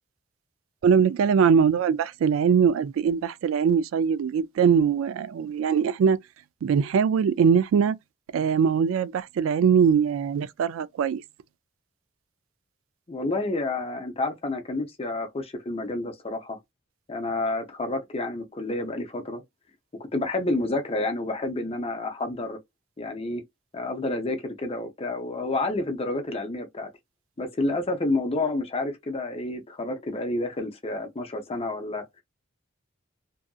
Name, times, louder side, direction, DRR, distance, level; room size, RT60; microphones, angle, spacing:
voice 1, 0.8-6.2 6.6-8.0 8.3-11.2, right 7 dB, 85° right, 0.3 m, -22 dB
voice 2, 13.1-16.6 17.1-19.4 20.1-22.6 23.0-23.4 23.7-26.9 27.4-32.0, left 2 dB, 30° left, 0.6 m, -29 dB
2.7 x 2.5 x 2.3 m
head